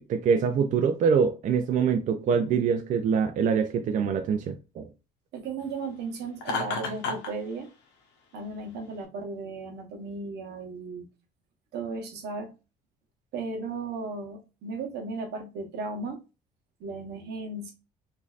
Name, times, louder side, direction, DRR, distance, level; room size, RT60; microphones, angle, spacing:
voice 1, 0.0-4.9, right 6 dB, 50° right, 0.4 m, -24 dB
voice 2, 5.3-7.7 8.3-11.1 11.7-12.5 13.3-16.2 16.8-17.7, right 3 dB, 80° right, 0.9 m, -35 dB
Laughter, 6.4-7.3, left 4 dB, 85° left, 0.9 m, -30 dB
3.2 x 2.6 x 2.4 m
cardioid pair, 110°, 17 cm